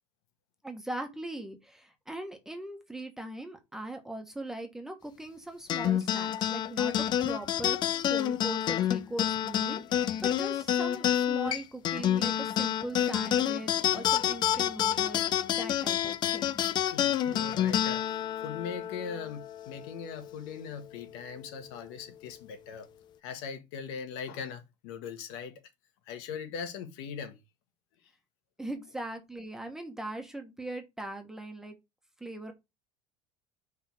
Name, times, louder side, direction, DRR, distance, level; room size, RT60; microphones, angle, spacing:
voice 1, 0.6-7.8 8.1-16.7 28.6-31.7 32.2-32.5, right 1 dB, 5° right, 1.3 m, -40 dB
sound 1, 5.7-20.4, left 11 dB, 35° left, 0.5 m, -29 dB
voice 2, 16.8-18.1 18.4-22.9 23.2-25.6 26.1-27.4, left 6 dB, 85° left, 1.5 m, -40 dB
5.6 x 3.7 x 5.8 m
cardioid pair, 155°, 13 cm